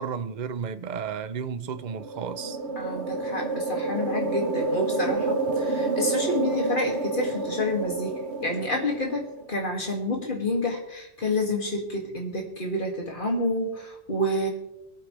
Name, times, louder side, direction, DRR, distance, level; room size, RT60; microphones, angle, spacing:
voice 1, 0.0-2.6, right 6 dB, 45° right, 0.7 m, -33 dB
sound 1, 1.8-9.5, right 3 dB, 70° right, 1.4 m, -29 dB
voice 2, 2.8-14.5, left 1 dB, 45° left, 2.6 m, -29 dB
24.0 x 8.8 x 3.4 m
omnidirectional pair, 1.2 m